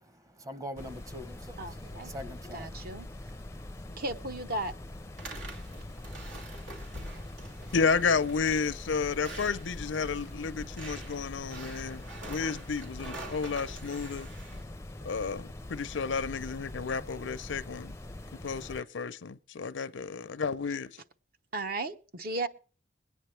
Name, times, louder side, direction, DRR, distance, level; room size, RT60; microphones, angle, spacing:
voice 1, 0.0-2.9, equal, 20° right, 0.8 m, -43 dB
sound 1, 0.8-18.8, left 1 dB, 15° left, 0.5 m, -44 dB
voice 2, 1.6-2.1 2.5-3.1 4.0-4.7 21.5-22.5, right 2 dB, 55° right, 0.9 m, -35 dB
sound 2, 5.2-14.6, right 1 dB, 85° right, 2.7 m, -45 dB
voice 3, 7.7-14.3 15.0-17.9 18.4-19.1 19.6-21.0, left 5 dB, 85° left, 0.6 m, -31 dB
22.0 x 9.2 x 3.3 m
head